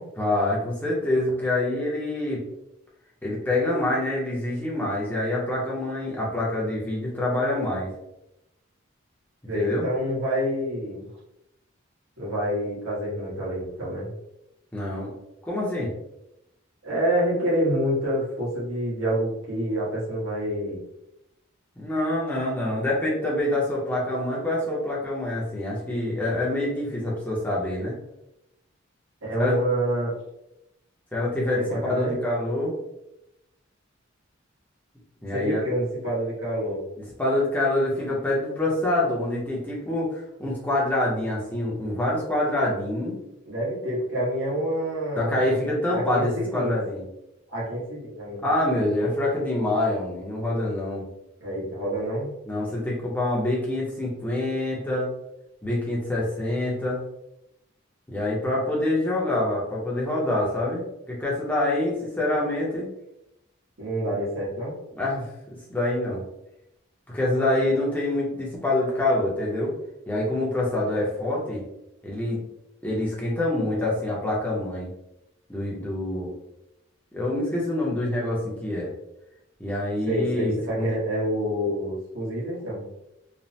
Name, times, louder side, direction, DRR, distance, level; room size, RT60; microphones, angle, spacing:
voice 1, 0.2-2.4 3.2-7.9 9.5-9.9 14.7-15.1 15.4-15.9 21.8-28.0 29.4-29.6 31.1-32.7 35.2-35.6 37.2-43.2 45.2-47.0 48.4-51.0 52.5-55.1 55.6-57.0 58.1-62.9 64.9-65.3 65.7-66.2 67.1-69.7 70.1-71.6 72.0-72.4 72.8-74.9 75.5-76.3 77.1-78.9 79.6-80.9, left 1 dB, 10° left, -5 dB, 0.6 m, -26 dB
voice 2, 9.5-11.1 12.2-14.1 16.8-20.8 29.2-30.2 31.5-32.2 35.3-36.8 43.4-45.4 45.9-46.7 47.5-48.4 51.4-52.3 63.8-64.7 80.1-82.8, equal, 90° right, -6 dB, 1.3 m, -27 dB
3.1 x 2.1 x 2.7 m, 0.86 s
head